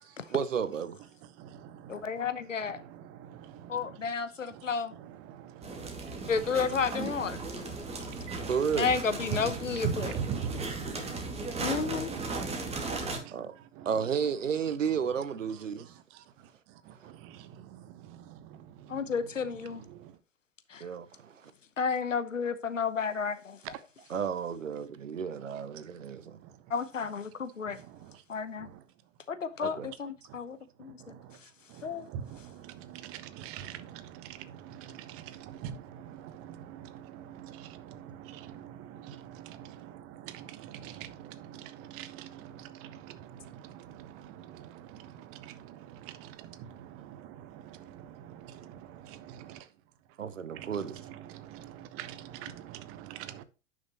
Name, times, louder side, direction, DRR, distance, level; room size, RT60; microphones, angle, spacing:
voice 1, 0.3-1.0 8.5-8.9 13.3-13.5 13.9-15.9 17.0-17.1 20.8-21.5 24.1-26.4 29.6-29.9 50.2-51.0, right 7 dB, 80° right, 1.0 m, -32 dB
voice 2, 1.3-2.1 2.4-4.1 4.5-6.3 6.7-6.9 7.2-8.5 9.3-13.3 13.8-13.9 16.1-20.2 23.6-23.8 26.4-26.6 27.7-28.2 28.6-28.8 29.6-30.0 30.3-30.4 30.8-31.4 31.7-49.7 50.5-53.4, right 9 dB, 35° right, 1.1 m, -44 dB
voice 3, 1.9-2.8 3.7-4.9 6.3-7.4 8.8-10.1 11.6-12.1 18.9-19.8 20.7-20.8 21.8-23.6 26.7-27.8 28.3-28.7 29.3-30.9 31.8-32.0, left 5 dB, 85° left, 1.0 m, -31 dB
sound 1, 5.6-13.2, right 3 dB, 15° right, 2.2 m, -36 dB
10.5 x 6.3 x 2.9 m
figure-of-eight pair, 100°, 37 cm